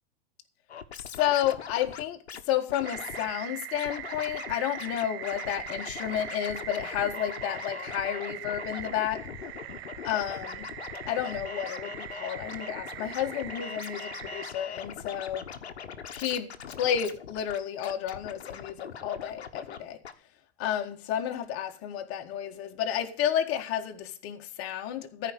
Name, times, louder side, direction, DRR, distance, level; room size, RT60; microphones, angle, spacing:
Scratching (performance technique), 0.7-2.4 2.7-3.3 3.7-4.5 4.8-19.8 20.0-20.1, left 7 dB, 85° left, 1.2 m, -41 dB
voice 1, 1.2-2.2 2.5-9.2 10.0-10.7 11.1-15.4 16.1-20.0 20.6-25.3, left 10 dB, 45° left, 1.8 m, -31 dB
sound 1, 2.8-14.5, right 11 dB, 70° right, 1.2 m, -41 dB
14.0 x 5.0 x 8.1 m
hypercardioid pair, 100°, 32 cm